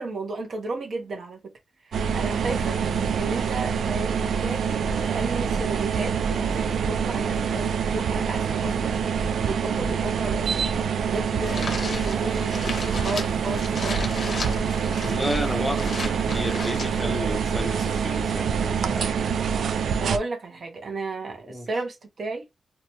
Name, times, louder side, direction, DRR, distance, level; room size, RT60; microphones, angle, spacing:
voice 1, 0.0-1.4 1.8-2.8 3.2-10.7 11.1-14.1 20.0-22.4, right 3 dB, 55° right, 0.7 m, -33 dB
sound 1, 1.9-20.2, right 6 dB, 85° right, 0.3 m, -26 dB
sound 2, 11.4-18.2, left 3 dB, 55° left, 0.8 m, -36 dB
voice 2, 15.0-19.1 21.5-21.7, left 1 dB, 10° left, 0.6 m, -32 dB
2.7 x 2.2 x 2.9 m
wide cardioid pair, 130°, 0 cm